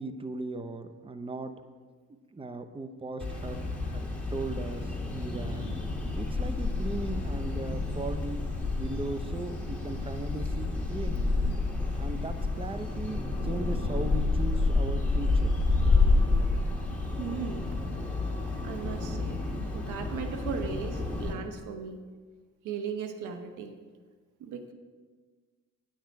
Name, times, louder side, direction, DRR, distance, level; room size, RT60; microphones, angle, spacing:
voice 1, 0.0-1.6 2.3-3.6 3.9-5.6 6.1-8.4 8.8-11.4 12.0-15.5, right 3 dB, 20° right, 9 dB, 0.8 m, -38 dB
sound 1, 3.2-21.3, left 3 dB, 5° left, 2.4 m, -29 dB
voice 2, 17.2-17.7 18.6-19.4 19.7-22.0 22.6-23.7 24.4-24.7, right 6 dB, 85° right, 6 dB, 1.0 m, -37 dB
9.6 x 8.9 x 4.7 m, 1.5 s
cardioid pair, 90°, 30 cm